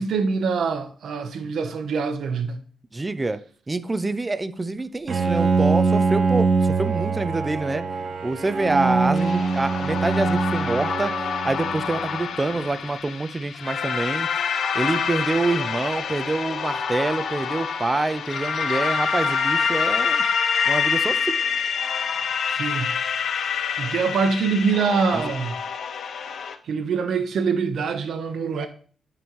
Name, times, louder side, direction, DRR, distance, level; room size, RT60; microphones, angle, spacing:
voice 1, 0.0-2.6 22.5-22.9 23.8-25.6 26.6-28.7, right 5 dB, 75° right, 1.0 m, -24 dB
voice 2, 2.9-3.4 3.7-6.5 6.8-7.8 8.2-11.1 11.4-14.3 14.7-20.2 20.7-21.3 25.1-25.3, right 2 dB, 20° right, 0.5 m, -26 dB
Bowed string instrument, 5.1-12.2, right 4 dB, 55° right, 0.8 m, -23 dB
sound 1, 9.2-26.6, left 6 dB, 70° left, 0.6 m, -26 dB
8.6 x 5.2 x 3.1 m
cardioid pair, 110°, 0 cm